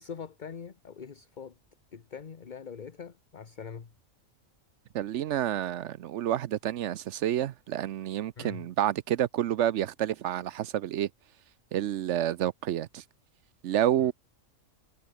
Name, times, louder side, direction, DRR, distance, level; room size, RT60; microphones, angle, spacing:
voice 1, 0.0-1.5 1.9-3.9 8.4-8.7 14.0-14.1, left 6 dB, 40° left, 1.0 m, -43 dB
voice 2, 4.9-11.1 11.7-13.0 13.6-14.1, right 11 dB, 70° right, 0.9 m, -29 dB
omnidirectional pair, 1.4 m